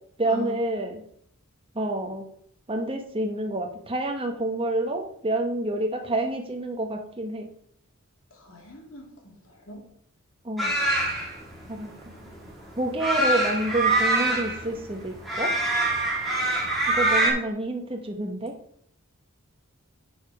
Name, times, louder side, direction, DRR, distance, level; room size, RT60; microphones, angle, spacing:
voice 1, 0.2-1.0 1.7-2.2 2.7-7.5 10.4-10.7 11.7-11.9 12.8-15.5 16.9-18.5, right 1 dB, 25° right, 3 dB, 1.1 m, -28 dB
voice 2, 8.4-9.3 9.7-9.8, equal, 65° left, -1 dB, 2.6 m, -40 dB
sound 1, 10.6-17.3, right 2 dB, ahead, 2.1 m, -24 dB
9.7 x 5.0 x 4.7 m, 0.68 s
head